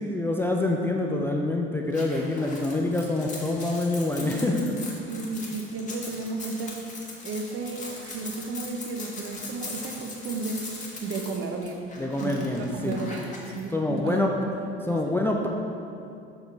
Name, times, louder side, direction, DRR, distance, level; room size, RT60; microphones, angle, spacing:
voice 1, 0.0-4.7 12.0-13.0 13.7-14.3 14.9-15.5, left 2 dB, 5° left, 0 dB, 0.4 m, -26 dB
sound 1, 1.9-13.6, left 2 dB, 25° left, 1.5 m, -40 dB
voice 2, 4.2-4.7 5.1-10.7 11.0-11.9 12.2-14.7 15.1-15.2, right 3 dB, 45° right, 3 dB, 0.9 m, -33 dB
7.1 x 3.8 x 4.6 m, 2.6 s
hypercardioid pair, 65°, 31 cm